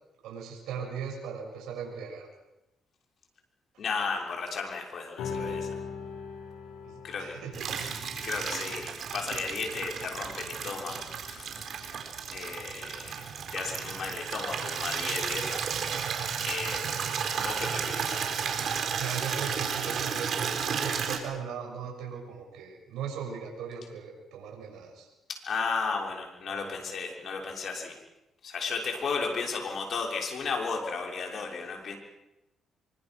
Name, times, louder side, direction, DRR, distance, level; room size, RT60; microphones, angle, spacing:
voice 1, 0.2-2.3 6.8-7.5 19.0-25.1 26.5-26.7, right 7 dB, 85° right, -1 dB, 6.9 m, -38 dB
voice 2, 3.8-5.7 7.0-7.4 8.2-11.7 12.3-16.1 16.4-18.2 25.3-28.0 28.4-32.0, left 4 dB, 60° left, 1 dB, 6.2 m, -34 dB
sound 1, 5.2-11.9, left 5 dB, 85° left, 5.1 m, -41 dB
Water tap faucet / Liquid, 7.5-21.2, right 7 dB, 60° right, 4.3 m, -33 dB
26.0 x 24.5 x 6.3 m, 0.93 s
cardioid pair, 90°, 0 cm